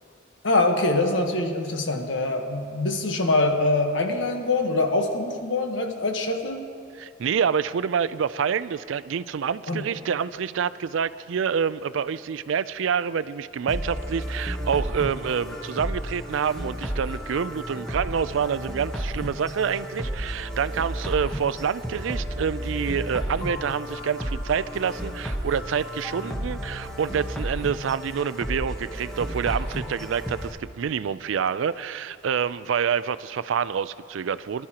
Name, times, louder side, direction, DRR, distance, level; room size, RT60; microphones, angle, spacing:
voice 1, 0.4-6.7 9.7-9.8, left 2 dB, 80° left, 4 dB, 1.2 m, -24 dB
voice 2, 7.0-34.7, right 7 dB, 85° right, 16 dB, 0.4 m, -27 dB
sound 1, 13.7-30.5, equal, ahead, 1.1 m, -32 dB
24.0 x 12.0 x 2.9 m, 2.3 s
head